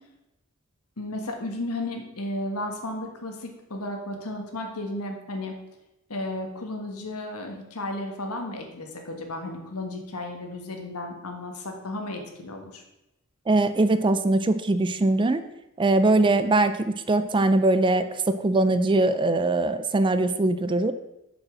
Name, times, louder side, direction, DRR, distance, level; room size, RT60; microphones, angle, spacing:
voice 1, 1.0-5.6 6.1-12.8, left 1 dB, 85° left, 3 dB, 1.5 m, -34 dB
voice 2, 13.5-15.4 15.8-20.9, right 2 dB, 20° right, 11 dB, 0.4 m, -22 dB
7.2 x 5.4 x 6.2 m, 0.92 s
head